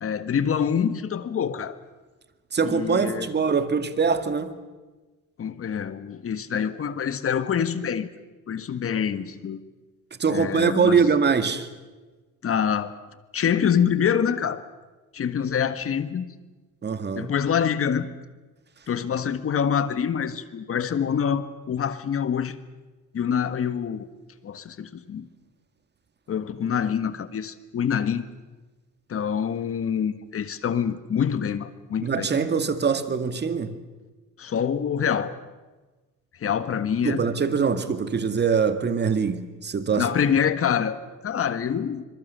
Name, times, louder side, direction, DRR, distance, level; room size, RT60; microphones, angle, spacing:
voice 1, 0.0-1.8 2.6-3.4 5.4-8.1 8.5-9.6 10.3-11.0 12.4-12.9 13.3-14.6 15.1-16.3 17.1-18.1 18.9-22.6 23.1-24.1 24.4-25.3 26.3-28.2 29.1-32.3 34.4-35.3 36.4-37.2 40.0-42.1, left 8 dB, 40° left, 1.6 m, -26 dB
voice 2, 2.5-4.6 10.2-11.7 16.8-17.3 32.0-33.7 37.0-40.1, right 5 dB, 30° right, 2.1 m, -23 dB
25.5 x 23.0 x 6.9 m
cardioid pair, 100°, 35 cm